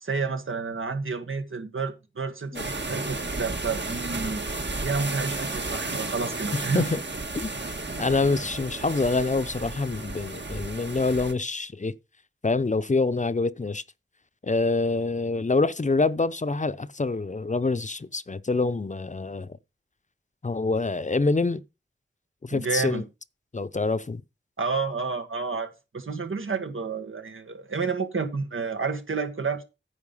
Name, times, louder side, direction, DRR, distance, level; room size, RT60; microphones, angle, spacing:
voice 1, 0.0-4.5 4.8-6.9 22.5-23.0 24.6-25.7 25.9-29.6, right 4 dB, 85° right, 1.7 m, -30 dB
sound 1, 2.5-11.3, right 3 dB, 60° right, 1.7 m, -33 dB
voice 2, 6.5-7.0 7.3-7.5 8.0-11.9 12.4-13.8 14.4-19.6 20.4-21.6 22.4-23.0 23.5-24.2, left 3 dB, 35° left, 0.6 m, -26 dB
9.8 x 6.4 x 5.4 m
wide cardioid pair, 65°, 20 cm